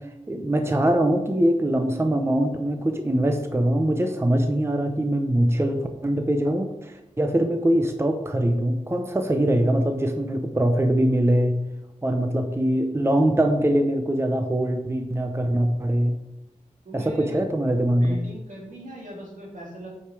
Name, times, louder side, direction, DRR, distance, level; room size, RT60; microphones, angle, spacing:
voice 1, 0.0-11.5 12.0-16.2 16.9-18.2, right 1 dB, 20° right, 5 dB, 0.8 m, -22 dB
voice 2, 16.8-17.4 18.0-19.9, right 1 dB, 80° right, -4 dB, 3.2 m, -39 dB
8.6 x 5.0 x 4.8 m, 0.92 s
wide cardioid pair, 60°, 13 cm